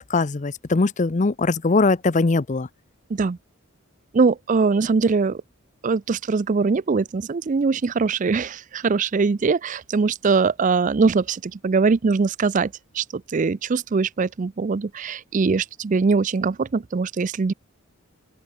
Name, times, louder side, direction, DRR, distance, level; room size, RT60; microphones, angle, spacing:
voice 1, 0.0-2.7, left 3 dB, 35° left, 0.6 m, -21 dB
voice 2, 4.1-5.4 5.8-17.5, right 4 dB, 35° right, 0.4 m, -22 dB
open air
head